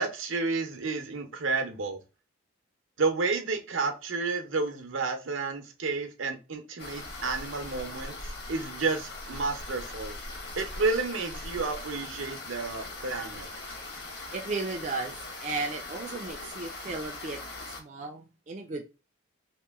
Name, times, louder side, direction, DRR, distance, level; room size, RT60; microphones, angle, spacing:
voice 1, 0.0-2.0 3.0-8.2 8.5-10.2 10.6-13.5, right 3 dB, 75° right, 0.7 m, -31 dB
sound 1, 6.8-17.8, left 2 dB, 50° left, 1.0 m, -40 dB
voice 2, 14.3-15.1 15.4-17.4 17.7-18.8, right 3 dB, 35° right, 0.4 m, -35 dB
2.9 x 2.9 x 3.4 m
head